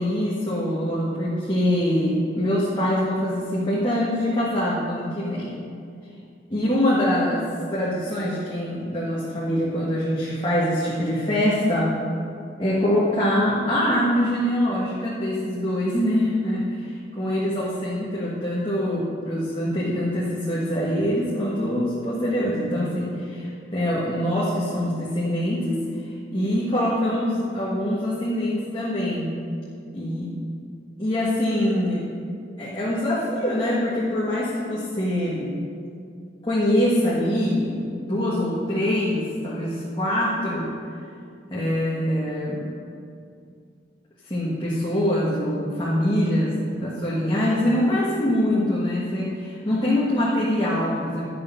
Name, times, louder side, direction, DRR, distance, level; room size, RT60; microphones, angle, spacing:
voice 1, 0.0-5.5 6.5-11.9 12.6-25.8 26.3-29.3 29.9-30.3 31.0-32.0 32.6-35.5 36.4-40.7 41.5-42.7 44.3-51.2, left 1 dB, 25° left, -8 dB, 1.5 m, -24 dB
11.5 x 6.8 x 5.5 m, 2.4 s
head